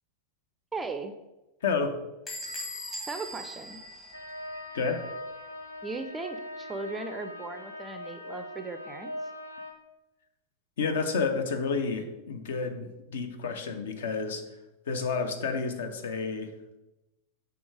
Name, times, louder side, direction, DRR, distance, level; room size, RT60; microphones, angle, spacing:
voice 1, 0.7-1.1 3.1-3.8 5.8-9.3, right 3 dB, 15° right, 8 dB, 0.4 m, -37 dB
voice 2, 1.6-2.0 4.7-5.0 10.8-14.4 14.9-16.8, left 4 dB, 60° left, 7 dB, 0.6 m, -30 dB
Bell / Squeak, 2.3-4.8, equal, 25° left, 1.4 m, -40 dB
sound 1, 4.1-9.7, left 1 dB, 90° left, 0.8 m, -41 dB
6.2 x 3.4 x 4.7 m, 1.0 s
figure-of-eight pair, 90°, 0 cm